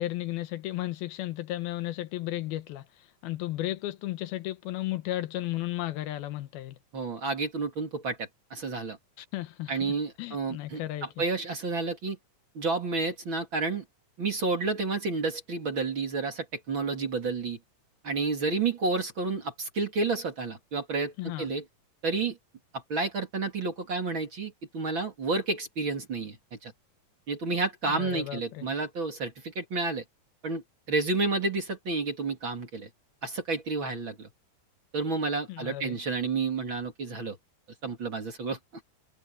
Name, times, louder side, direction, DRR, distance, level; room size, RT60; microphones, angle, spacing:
voice 1, 0.0-6.8 9.2-11.2 21.2-21.5 27.8-28.7 35.5-36.0, left 15 dB, 80° left, 2.9 m, -34 dB
voice 2, 6.9-9.0 9.7-12.2 12.5-13.8 14.2-17.6 18.0-21.6 22.0-22.4 22.7-26.7 27.3-30.0 30.4-32.9 33.2-34.3 34.9-37.4 37.8-38.6, right 3 dB, 35° right, 2.7 m, -30 dB
omnidirectional pair, 4.3 m